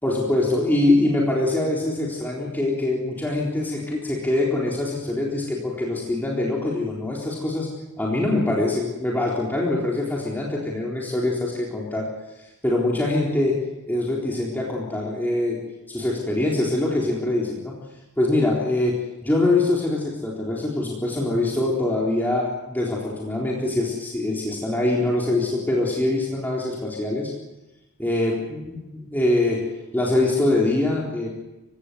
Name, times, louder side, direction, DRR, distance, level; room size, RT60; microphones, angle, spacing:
voice 1, 0.0-7.7 8.0-12.1 12.6-13.6 13.9-15.6 15.9-17.7 18.2-18.9 19.2-27.3 28.0-28.8 29.1-29.6 29.9-31.3, left 2 dB, 10° left, -4 dB, 3.9 m, -23 dB
28.0 x 17.0 x 8.2 m, 1.0 s
head